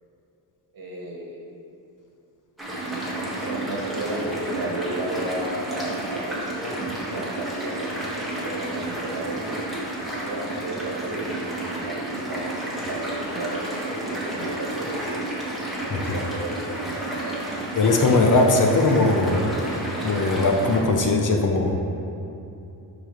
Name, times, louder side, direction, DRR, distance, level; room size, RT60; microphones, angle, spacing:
voice 1, 0.7-1.4 3.4-9.6 10.2-11.2 11.6-14.9 15.8-17.5, right 1 dB, 55° right, -2 dB, 1.4 m, -34 dB
sound 1, 2.6-20.8, right 1 dB, ahead, 1.6 m, -31 dB
voice 2, 17.8-19.4 20.0-21.7, left 2 dB, 45° left, 2 dB, 0.7 m, -19 dB
11.5 x 4.0 x 3.1 m, 2.7 s
wide cardioid pair, 120°, 43 cm